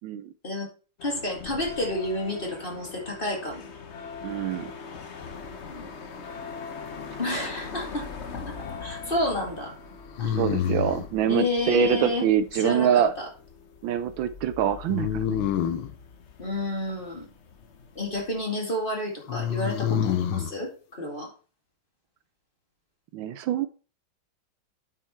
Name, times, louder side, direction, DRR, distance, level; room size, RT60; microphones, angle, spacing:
sound 1, 1.0-18.4, left 5 dB, 45° left, 1.0 m, -42 dB
voice 1, 1.0-3.7 5.4-5.9 7.2-8.1 8.8-9.7 10.2-10.4 11.3-12.3 12.6-12.9 16.4-17.3 18.0-21.3, left 2 dB, 25° left, 0 dB, 2.3 m, -30 dB
voice 2, 4.2-4.7 10.4-13.1 13.8-15.5 23.1-23.7, right 10 dB, 75° right, 12 dB, 1.3 m, -25 dB
sound 2, 7.4-8.1 10.2-11.1 14.9-15.9 19.3-20.5, left 9 dB, 85° left, 1.6 m, -27 dB
8.9 x 5.6 x 4.4 m, 0.36 s
omnidirectional pair, 2.2 m